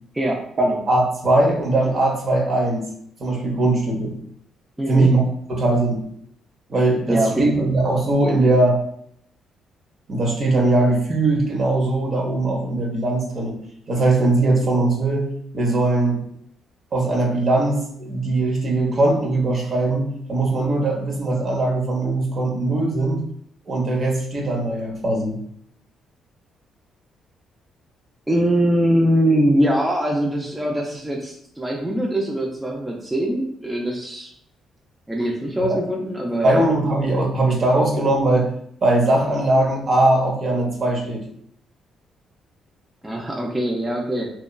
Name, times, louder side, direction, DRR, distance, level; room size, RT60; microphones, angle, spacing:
voice 1, 0.1-0.8 4.8-5.1 7.1-7.7 28.3-34.3 35.1-36.7 43.0-44.3, right 1 dB, 10° right, -1 dB, 0.4 m, -22 dB
voice 2, 0.9-2.9 3.2-4.1 4.9-5.2 5.5-6.1 6.7-8.8 10.1-13.6 13.9-16.2 16.9-20.0 20.3-23.2 23.7-25.4 35.7-35.8 36.4-38.5 38.8-41.3, right 2 dB, 50° right, 0 dB, 0.7 m, -20 dB
2.9 x 2.2 x 2.2 m, 0.68 s
cardioid pair, 90°, 0 cm